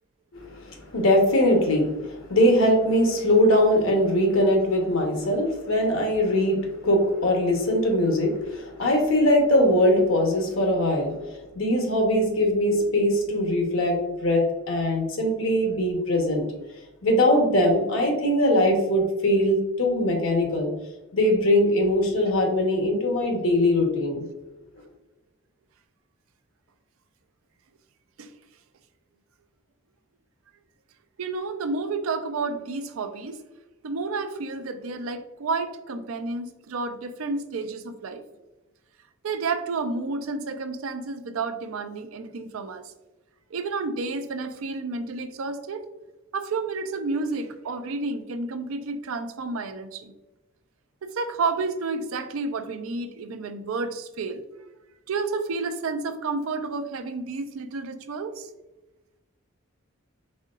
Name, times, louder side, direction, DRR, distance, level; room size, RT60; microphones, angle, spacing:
voice 1, 0.3-6.6 6.8-11.2 11.5-14.0 14.2-16.5 17.0-20.7 21.1-24.2, left 1 dB, 80° left, 2 dB, 1.0 m, -21 dB
voice 2, 31.2-33.4 33.8-38.2 39.2-42.9 43.5-45.8 46.3-50.1 51.0-54.4 55.1-58.5, right 3 dB, 85° right, 8 dB, 0.4 m, -30 dB
4.3 x 3.6 x 2.4 m, 1.0 s
head